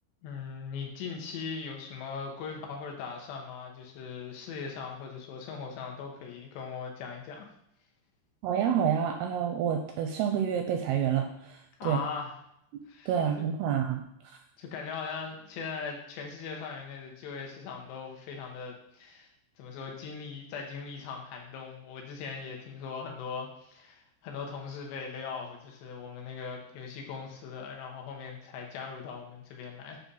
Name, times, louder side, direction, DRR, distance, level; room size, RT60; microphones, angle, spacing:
voice 1, 0.2-7.5 11.8-12.3 12.9-13.1 14.6-19.3 19.6-30.0, left 5 dB, 75° left, 1 dB, 3.2 m, -40 dB
voice 2, 8.4-12.0 13.1-14.4, right 8 dB, 80° right, 4 dB, 2.3 m, -28 dB
8.4 x 3.8 x 5.5 m, 0.75 s
omnidirectional pair, 5.1 m